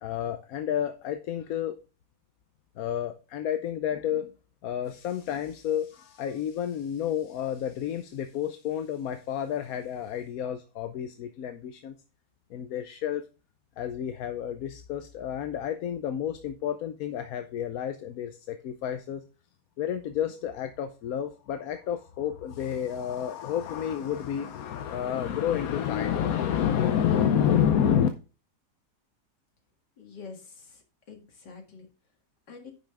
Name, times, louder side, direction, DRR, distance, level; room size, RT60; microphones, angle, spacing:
voice 1, 0.0-1.7 2.8-4.3 4.6-11.9 12.5-13.2 13.8-19.2 19.8-28.1, left 9 dB, 65° left, 8 dB, 1.1 m, -30 dB
voice 2, 30.0-31.9 32.5-32.7, left 5 dB, 85° left, 2 dB, 2.5 m, -46 dB
10.0 x 5.8 x 3.4 m, 0.34 s
omnidirectional pair, 1.8 m